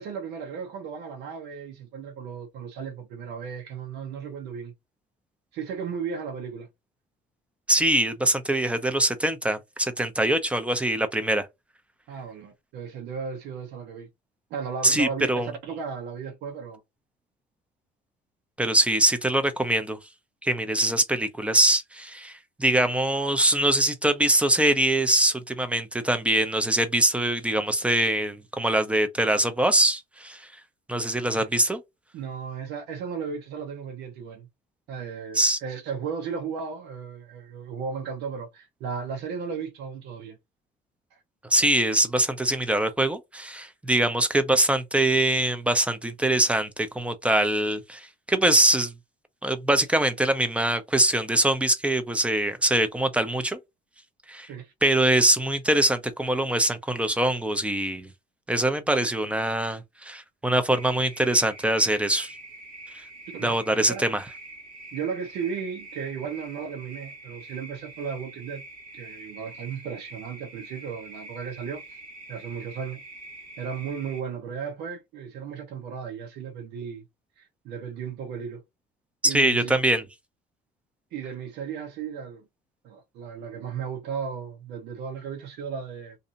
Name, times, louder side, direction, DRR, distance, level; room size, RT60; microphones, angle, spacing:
voice 1, 0.0-4.7 5.5-6.7 12.1-14.1 14.5-16.8 31.3-31.4 32.1-34.5 34.9-40.4 41.1-41.2 54.5-54.7 63.3-64.0 64.9-68.6 68.9-72.0 72.3-73.0 73.6-77.0 77.4-78.6 79.2-79.8 81.1-82.5 82.8-86.2, right 6 dB, 85° right, 0.9 m, -35 dB
voice 2, 7.7-11.5 14.8-15.5 18.6-20.0 20.4-30.5 30.9-31.8 35.3-35.6 41.5-48.9 49.4-53.6 54.3-54.5 54.8-58.1 58.5-62.3 63.4-64.2 79.2-80.0, right 1 dB, 5° right, 0.6 m, -23 dB
sound 1, 60.7-74.2, right 2 dB, 55° right, 1.3 m, -45 dB
2.7 x 2.5 x 2.5 m
cardioid pair, 110°, 17 cm